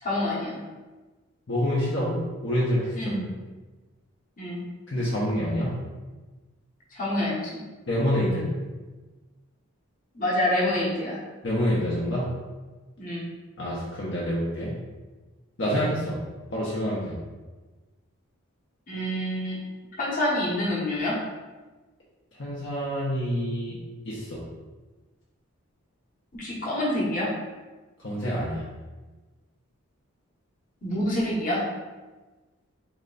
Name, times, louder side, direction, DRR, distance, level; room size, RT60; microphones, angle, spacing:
voice 1, 0.0-0.6 2.9-3.2 4.4-4.6 6.9-7.6 10.1-11.2 13.0-13.2 15.6-15.9 18.9-19.6 20.0-21.2 26.3-27.3 30.8-31.6, left 1 dB, 35° left, -6 dB, 1.0 m, -27 dB
voice 2, 1.5-3.2 4.9-5.8 7.9-8.5 11.4-12.3 13.6-14.7 15.6-16.2 16.5-17.1 22.4-23.8 24.1-24.4 28.0-28.6, equal, 55° left, -7 dB, 0.8 m, -27 dB
3.3 x 2.9 x 3.8 m, 1.2 s
head